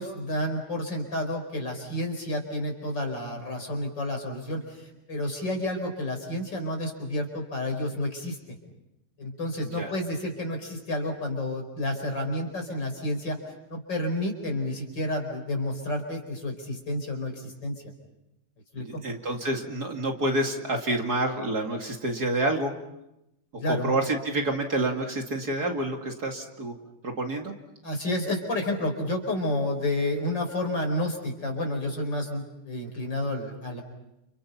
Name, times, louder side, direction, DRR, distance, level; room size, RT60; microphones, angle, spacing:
voice 1, 0.0-8.4 9.2-13.4 13.7-17.8 18.7-19.0 23.6-24.0 27.8-33.8, left 1 dB, 55° left, 3 dB, 5.6 m, -30 dB
voice 2, 18.8-22.7 23.5-26.7 27.0-27.5, right 2 dB, 45° right, 2 dB, 2.8 m, -28 dB
30.0 x 30.0 x 5.7 m, 0.88 s
omnidirectional pair, 2.4 m